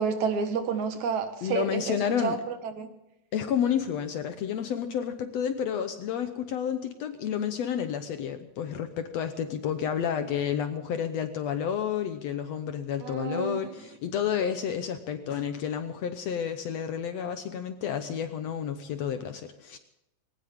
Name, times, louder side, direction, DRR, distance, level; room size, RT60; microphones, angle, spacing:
voice 1, 0.0-2.9 13.0-13.7, right 6 dB, 65° right, 7 dB, 2.7 m, -30 dB
voice 2, 1.4-2.4 3.3-19.8, left 8 dB, 65° left, 9 dB, 1.8 m, -30 dB
20.5 x 19.0 x 3.6 m, 0.89 s
omnidirectional pair, 3.7 m